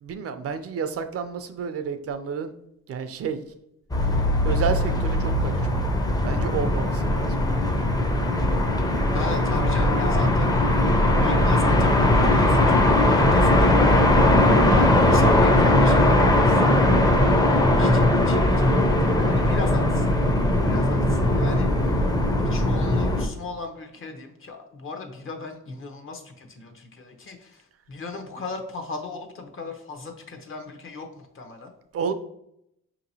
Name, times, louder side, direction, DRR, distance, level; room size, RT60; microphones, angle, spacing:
voice 1, 0.0-2.5 2.9-3.4 4.4-5.8 6.2-7.4 31.9-32.1, right 6 dB, 50° right, 9 dB, 0.4 m, -30 dB
sound 1, 3.9-23.3, left 1 dB, 15° left, 0.5 m, -19 dB
voice 2, 9.1-10.6 11.2-14.1 14.6-16.6 17.1-20.2 20.6-22.0 22.4-31.7, left 3 dB, 45° left, 5 dB, 0.8 m, -37 dB
5.2 x 2.8 x 2.7 m, 0.77 s
cardioid pair, 90°, 30 cm